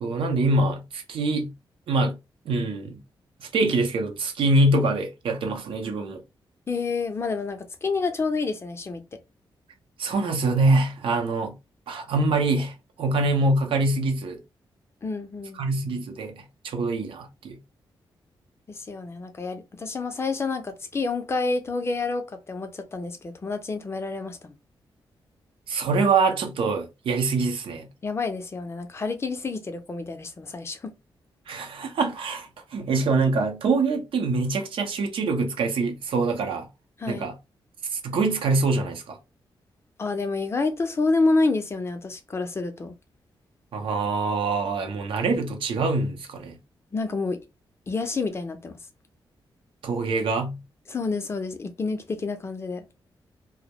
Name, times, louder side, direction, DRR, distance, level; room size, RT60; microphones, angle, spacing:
voice 1, 0.0-1.5 1.9-2.1 2.5-3.0 3.4-6.2 10.0-11.5 11.9-14.4 15.6-17.6 25.7-27.9 31.5-36.7 37.1-37.3 37.9-39.2 43.7-46.6 49.8-50.6, right 3 dB, 80° right, 0.6 m, -24 dB
voice 2, 6.7-9.0 15.0-15.6 18.7-24.5 28.0-30.9 37.0-37.3 40.0-42.9 46.9-47.4 47.9-48.8 50.9-52.9, left 3 dB, 30° left, 0.4 m, -28 dB
2.2 x 2.0 x 2.8 m
wide cardioid pair, 125°, 9 cm